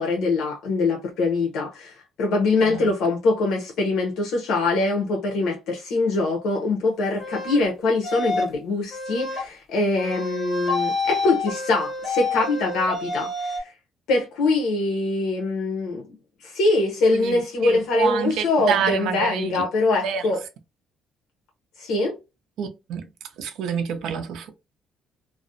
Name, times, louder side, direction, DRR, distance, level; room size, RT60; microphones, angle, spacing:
voice 1, 0.0-13.7 14.1-16.1 16.4-20.4 21.8-22.2, left 3 dB, 75° left, 0.6 m, -23 dB
sound 1, 7.2-7.6 8.0-8.6 8.9-9.4 10.0-13.6, left 3 dB, 5° left, 0.9 m, -28 dB
voice 2, 17.1-19.6 20.0-20.2 22.6-23.1 23.4-24.5, right 7 dB, 70° right, 0.5 m, -28 dB
2.4 x 2.0 x 2.5 m
cardioid pair, 170°, 0 cm